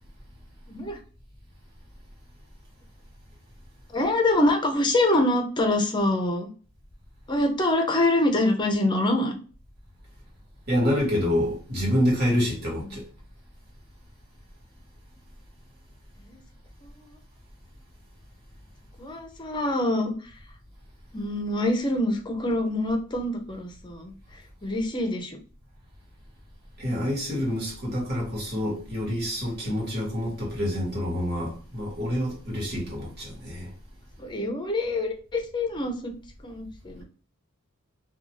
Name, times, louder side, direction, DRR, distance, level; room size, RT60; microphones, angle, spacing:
voice 1, 0.7-1.0 3.9-6.5 7.3-9.3 12.7-12.8 16.3-16.4 19.0-20.1 21.1-24.1 24.6-25.4 34.2-36.1 36.4-37.0, left 1 dB, 20° left, 0.6 m, -25 dB
voice 2, 10.7-13.0 26.8-33.7, equal, 50° right, 1.3 m, -27 dB
2.5 x 2.3 x 3.0 m
head